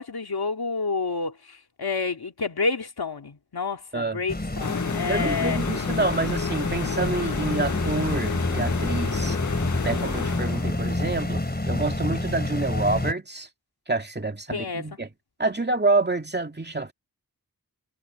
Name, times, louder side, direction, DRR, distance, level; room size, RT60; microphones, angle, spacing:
voice 1, 0.0-5.6 14.5-15.0, left 4 dB, 80° left, 2.3 m, -29 dB
sound 1, 4.3-13.1, left 1 dB, 25° left, 3.5 m, -28 dB
sound 2, 4.6-11.2, left 7 dB, 50° left, 0.6 m, -31 dB
voice 2, 5.1-9.4 9.8-13.5 13.9-15.1 15.4-16.9, right 3 dB, 25° right, 2.2 m, -27 dB
wide cardioid pair, 65°, 37 cm